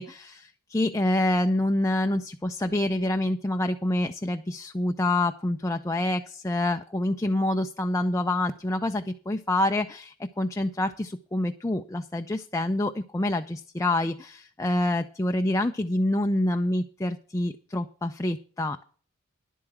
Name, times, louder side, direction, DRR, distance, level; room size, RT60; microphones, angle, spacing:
voice 1, 0.0-18.8, left 1 dB, 15° left, 6 dB, 0.5 m, -27 dB
11.0 x 8.6 x 5.9 m, 0.42 s
head